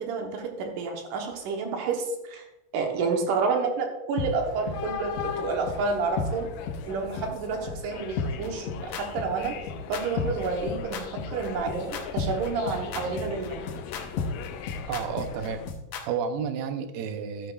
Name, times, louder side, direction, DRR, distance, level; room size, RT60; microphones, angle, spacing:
voice 1, 0.0-2.4 2.7-6.5 6.8-9.6 9.9-13.7, right 4 dB, 70° right, 2 dB, 2.6 m, -29 dB
sound 1, 4.2-4.3 4.7-4.8 5.2-5.3 5.7-5.8 6.2-6.3 6.7-6.8 7.2-7.3 7.7-7.8 8.2-16.0, left 6 dB, 70° left, 1.6 m, -32 dB
sound 2, 4.3-15.7, left 7 dB, 85° left, 1.6 m, -39 dB
voice 2, 14.9-15.6 16.1-17.5, right 6 dB, 90° right, 8 dB, 2.6 m, -31 dB
12.0 x 9.4 x 2.4 m, 0.99 s
omnidirectional pair, 4.0 m